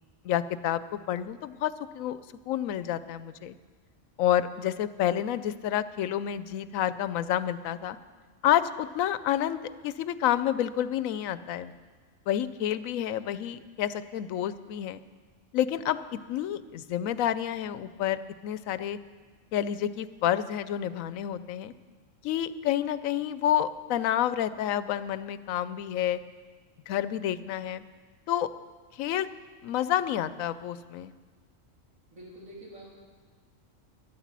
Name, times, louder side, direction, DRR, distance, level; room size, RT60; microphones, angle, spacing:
voice 1, 0.2-2.2 2.5-3.6 4.2-8.0 8.4-11.7 12.3-15.0 15.5-19.0 19.5-21.7 22.2-26.2 26.9-27.8 28.3-28.5 29.0-29.3 29.6-31.1, left 11 dB, 90° left, 14 dB, 1.0 m, -29 dB
voice 2, 32.1-32.9, right 1 dB, 90° right, -5 dB, 3.8 m, -46 dB
12.0 x 10.5 x 7.4 m, 1.5 s
omnidirectional pair, 1.4 m